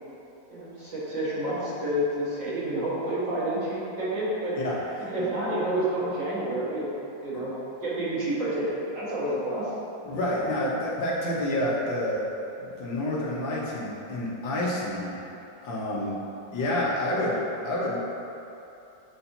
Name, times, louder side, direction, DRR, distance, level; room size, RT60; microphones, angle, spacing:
voice 1, 0.5-4.6 5.0-7.5 7.8-9.7, right 1 dB, 75° right, -9 dB, 2.4 m, -29 dB
voice 2, 4.6-5.1 7.3-7.4 10.0-12.2 12.6-15.1 15.6-16.2 16.5-18.0, left 1 dB, 90° left, -6 dB, 1.8 m, -28 dB
8.4 x 4.3 x 2.7 m, 2.9 s
omnidirectional pair, 2.0 m